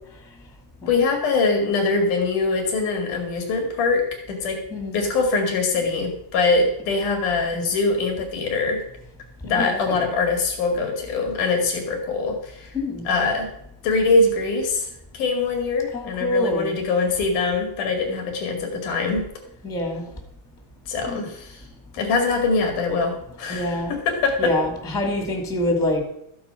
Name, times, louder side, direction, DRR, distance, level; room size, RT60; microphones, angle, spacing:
voice 1, 0.9-4.6 4.9-8.8 9.4-12.7 13.1-13.5 13.8-14.9 15.1-19.3 20.9-21.6 21.9-24.5, left 3 dB, 85° left, 2 dB, 3.9 m, -23 dB
voice 2, 9.4-10.1 12.7-13.1 15.9-16.8 19.6-20.1 20.9-21.3 23.5-24.0 24.4-26.0, left 1 dB, ahead, 3 dB, 1.7 m, -26 dB
13.5 x 9.4 x 5.7 m, 0.77 s
omnidirectional pair, 3.5 m